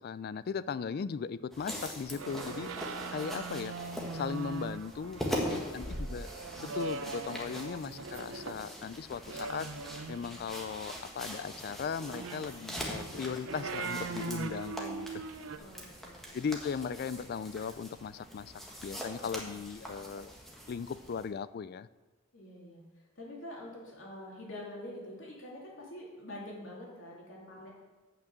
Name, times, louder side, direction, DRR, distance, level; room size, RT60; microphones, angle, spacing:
voice 1, 0.0-2.7 3.1-3.7 4.1-6.3 6.6-9.7 10.1-15.2 16.3-20.4 20.7-21.9, left 6 dB, 50° left, 17 dB, 0.3 m, -38 dB
sound 1, 1.5-21.3, equal, ahead, 1.6 m, -42 dB
sound 2, 2.1-8.6 9.3-10.5 12.0-15.6, right 4 dB, 80° right, 0.6 m, -41 dB
voice 2, 5.3-6.0 9.3-9.8 15.6-16.4 22.3-27.7, left 1 dB, 70° left, -3 dB, 3.0 m, -47 dB
8.9 x 6.0 x 7.5 m, 1.2 s
head